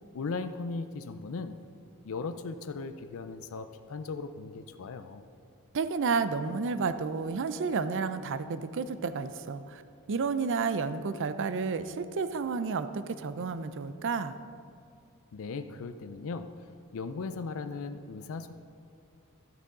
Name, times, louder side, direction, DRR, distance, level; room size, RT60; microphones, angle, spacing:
voice 1, 0.1-1.6 2.0-5.2 15.3-16.5 16.9-18.6, left 4 dB, 65° left, 10 dB, 0.5 m, -37 dB
voice 2, 5.7-9.8 10.1-14.4, right 5 dB, 60° right, 12 dB, 0.5 m, -31 dB
12.5 x 9.2 x 3.8 m, 2.4 s
head